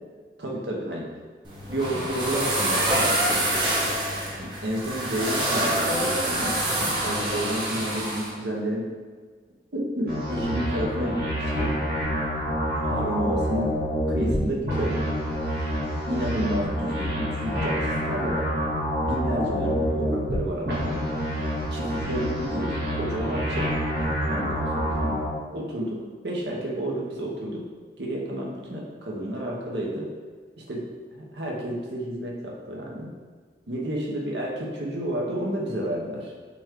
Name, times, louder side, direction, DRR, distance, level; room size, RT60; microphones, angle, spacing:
voice 1, 0.4-1.1 1.7-3.2 4.4-6.5 7.0-8.8 9.7-11.7 12.8-13.7 14.1-15.0 16.1-18.5 19.0-21.1 21.7-23.7 24.3-25.2 25.5-27.6 28.0-30.1 30.6-30.8 31.1-33.1 33.7-36.3, right 1 dB, 75° right, -2 dB, 0.9 m, -30 dB
sound 1, 1.4-8.3, right 1 dB, 25° right, 1.0 m, -26 dB
sound 2, 10.1-14.4 14.6-20.4 20.7-25.3, equal, 60° right, 1.4 m, -27 dB
5.9 x 2.4 x 3.6 m, 1.5 s
head